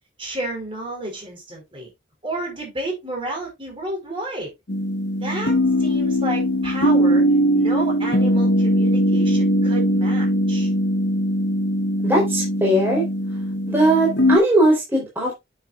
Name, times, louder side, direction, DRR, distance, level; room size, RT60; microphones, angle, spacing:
voice 1, 0.2-1.9 2.2-4.5 5.1-7.2 7.5-10.7, right 2 dB, 25° right, 4.7 m, -31 dB
sound 1, 4.7-14.4, equal, 60° left, 1.1 m, -20 dB
voice 2, 12.0-13.0 13.7-15.3, right 1 dB, 10° right, 4.0 m, -19 dB
9.7 x 7.2 x 2.5 m
head